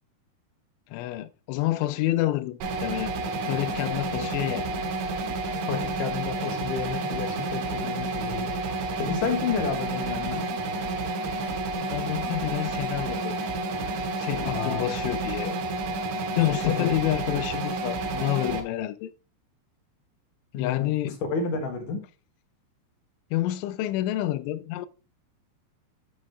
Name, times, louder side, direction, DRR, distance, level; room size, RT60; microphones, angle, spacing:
voice 1, 0.9-3.1 3.5-4.8 11.7-13.4 14.2-15.6 16.4-19.1 20.6-21.2 23.3-24.9, left 15 dB, 80° left, 3.0 m, -28 dB
sound 1, 2.6-18.6, right 3 dB, 80° right, 3.7 m, -30 dB
voice 2, 5.7-8.5 9.0-10.4 14.4-14.8 16.6-16.9 20.5-20.9 21.3-22.0, left 5 dB, 60° left, 2.4 m, -30 dB
8.6 x 7.3 x 3.4 m
omnidirectional pair, 5.5 m